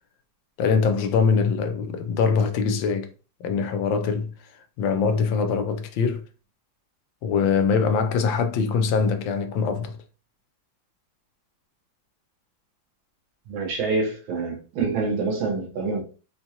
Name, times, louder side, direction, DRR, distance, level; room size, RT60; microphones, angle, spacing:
voice 1, 0.6-3.1 3.4-4.3 4.8-6.2 7.2-10.0, left 5 dB, 80° left, 1.3 m, -23 dB
voice 2, 13.5-16.0, right 4 dB, 90° right, 1.8 m, -26 dB
4.4 x 2.3 x 2.8 m
omnidirectional pair, 2.1 m